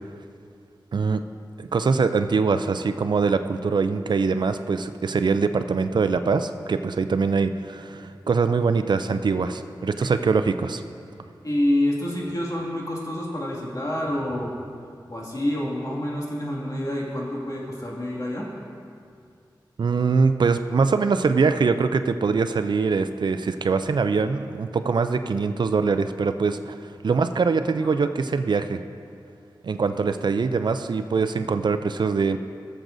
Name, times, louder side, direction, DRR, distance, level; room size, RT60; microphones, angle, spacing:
voice 1, 1.6-10.8 19.8-26.8 27.0-28.8 29.6-32.4, right 4 dB, 65° right, 10 dB, 0.4 m, -23 dB
voice 2, 11.4-14.5 15.1-18.5 27.8-27.9, left 1 dB, 45° left, -4 dB, 2.1 m, -27 dB
16.0 x 7.5 x 2.6 m, 2.3 s
wide cardioid pair, 55°, 8 cm